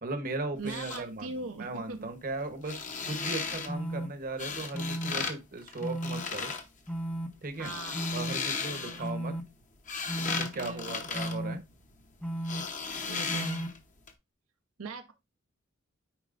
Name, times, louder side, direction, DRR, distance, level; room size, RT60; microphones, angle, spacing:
voice 1, 0.0-2.7 3.0-6.5 7.4-7.7 8.1-9.3 10.4-11.6, right 2 dB, 45° right, 1.0 m, -37 dB
sound 1, 0.5-1.0 2.5-3.7 4.4-5.3 5.6-6.6 7.4-9.1 9.6-12.1 12.4-13.8 14.1-14.2, left 5 dB, 40° left, 0.9 m, -36 dB
voice 2, 0.6-2.1 7.6-8.1 8.7-9.1 10.5-11.0 12.8-13.7 14.8-15.1, right 3 dB, 80° right, 0.7 m, -40 dB
sound 2, 3.7-4.1 4.7-5.1 5.8-6.2 6.9-7.3 7.9-8.3 9.0-9.4 10.1-10.5 11.1-11.5 12.2-12.6 13.3-13.7, right 1 dB, 5° left, 0.7 m, -34 dB
9.0 x 4.3 x 2.5 m
head